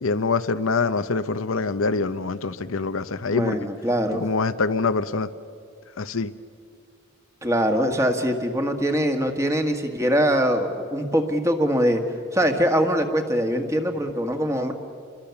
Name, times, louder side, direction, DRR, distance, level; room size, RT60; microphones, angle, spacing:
voice 1, 0.0-3.6 4.1-5.3 6.0-6.3, left 4 dB, 80° left, 11 dB, 0.8 m, -25 dB
voice 2, 3.3-4.2 7.4-12.0 12.3-14.7, equal, 15° right, 5 dB, 1.6 m, -23 dB
29.0 x 22.0 x 7.1 m, 2.3 s
head